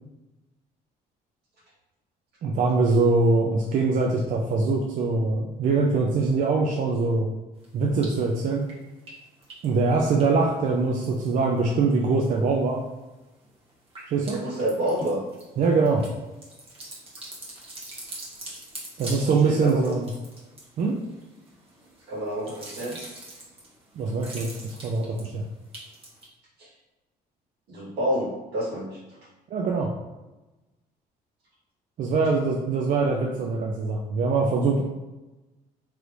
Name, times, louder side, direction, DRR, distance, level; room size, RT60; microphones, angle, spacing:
voice 1, 2.4-7.3 7.7-8.7 9.6-12.8 14.1-14.4 15.6-16.1 19.0-20.1 20.8-21.0 24.0-25.5 29.5-29.9 32.0-34.8, right 3 dB, 50° right, -1 dB, 0.4 m, -23 dB
sound 1, 7.6-8.3 8.6-11.6 11.9-12.5 12.9-26.3, right 1 dB, 35° right, 1.0 m, -44 dB
voice 2, 14.2-15.2 19.2-20.0 22.1-23.0 26.6-26.7 27.7-29.0, equal, 75° right, -6 dB, 1.5 m, -29 dB
3.2 x 3.0 x 2.5 m, 1.1 s
cardioid pair, 110°, 17 cm